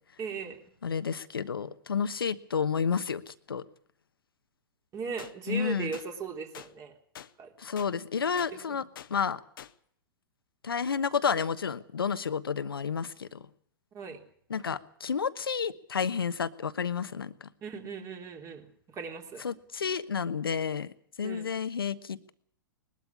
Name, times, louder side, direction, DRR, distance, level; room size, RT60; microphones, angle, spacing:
voice 1, 0.2-0.6 4.9-6.9 7.4-7.5 8.5-8.8 13.9-14.2 17.6-19.4 21.2-21.5, right 5 dB, 25° right, 4 dB, 3.4 m, -38 dB
voice 2, 0.8-3.6 5.5-5.9 7.6-8.8 9.1-9.4 10.6-13.4 14.5-17.3 19.4-20.9 21.2-22.3, left 6 dB, 85° left, 14 dB, 1.1 m, -30 dB
sound 1, 5.2-5.3 5.9-6.1 6.5-6.7 7.1-7.3 7.8-7.9 8.4-8.5 8.9-9.1 9.6-9.7, left 10 dB, 70° left, 1.0 m, -45 dB
21.0 x 12.5 x 9.9 m, 0.64 s
hypercardioid pair, 115°, 12 cm